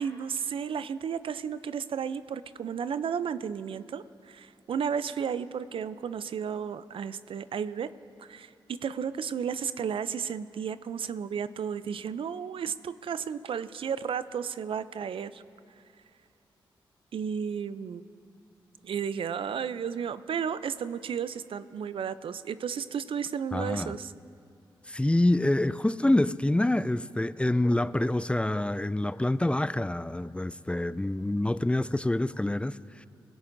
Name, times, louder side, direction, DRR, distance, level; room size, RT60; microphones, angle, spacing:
voice 1, 0.0-7.9 8.2-8.5 8.8-15.4 17.1-18.0 18.8-24.1, right 7 dB, 70° right, 0.5 m, -33 dB
voice 2, 23.5-24.0 24.9-33.1, left 1 dB, 10° left, 0.3 m, -26 dB
19.5 x 17.0 x 2.6 m
supercardioid pair, 45°, 10 cm